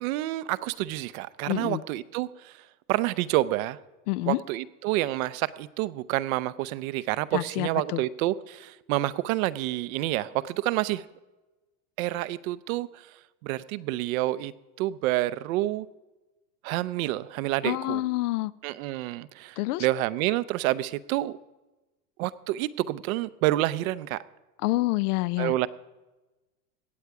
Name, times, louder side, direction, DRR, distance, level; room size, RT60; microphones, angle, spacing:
voice 1, 0.0-2.5 2.9-3.8 4.3-11.1 12.0-12.9 13.4-14.5 14.8-15.9 16.6-18.0 18.6-21.4 22.2-24.2 25.4-25.7, right 16 dB, 60° right, 16 dB, 0.6 m, -28 dB
voice 2, 1.5-1.8 4.1-4.4 7.3-8.0 17.6-18.5 19.6-19.9 24.6-25.5, left 19 dB, 70° left, 20 dB, 0.6 m, -27 dB
17.0 x 8.1 x 4.7 m, 1.1 s
supercardioid pair, 120°, 48 cm